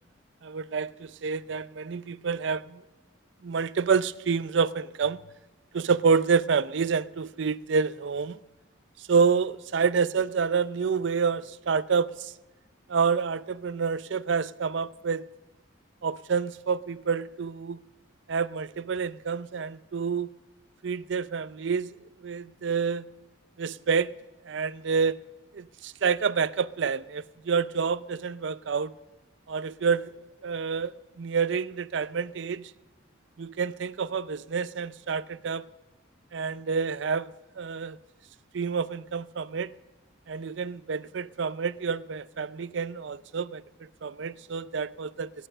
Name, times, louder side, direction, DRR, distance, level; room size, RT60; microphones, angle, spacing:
voice 1, 0.4-2.8 3.4-5.2 5.7-8.4 9.0-12.3 12.9-15.2 16.0-17.8 18.3-20.3 20.8-21.9 22.2-23.0 23.6-24.1 24.5-25.2 25.5-28.9 29.5-30.1 30.4-30.9 31.2-32.7 33.4-35.6 36.3-37.3 37.6-38.0 38.5-39.7 40.3-45.3, right 5 dB, 65° right, 0.5 m, -28 dB
16.5 x 11.0 x 6.6 m
head